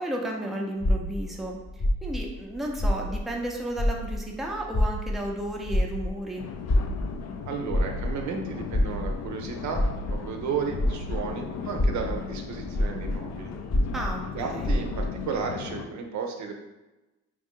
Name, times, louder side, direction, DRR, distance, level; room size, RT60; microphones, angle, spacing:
voice 1, 0.0-6.5 13.9-14.7, right 1 dB, ahead, -1 dB, 0.5 m, -33 dB
sound 1, 0.8-3.5 3.7-11.3 11.7-15.2, left 1 dB, 30° left, 0.7 m, -27 dB
sound 2, 6.4-15.8, left 6 dB, 60° left, 0.5 m, -37 dB
voice 2, 7.4-13.5 14.3-16.5, right 5 dB, 70° right, 3 dB, 0.6 m, -33 dB
3.1 x 2.5 x 3.6 m, 1.1 s
cardioid pair, 90°, 30 cm